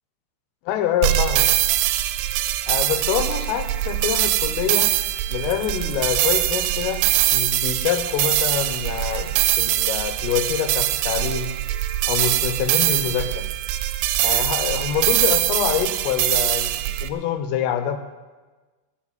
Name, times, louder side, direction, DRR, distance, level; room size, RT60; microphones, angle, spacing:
voice 1, 0.7-1.5 2.7-4.9 5.3-7.0 7.3-9.3 9.6-11.6 12.1-13.5 14.2-18.0, left 9 dB, 85° left, 8 dB, 3.6 m, -25 dB
sound 1, 1.0-17.1, right 14 dB, 90° right, 3.2 m, -22 dB
15.0 x 6.8 x 9.1 m, 1.3 s
omnidirectional pair, 5.8 m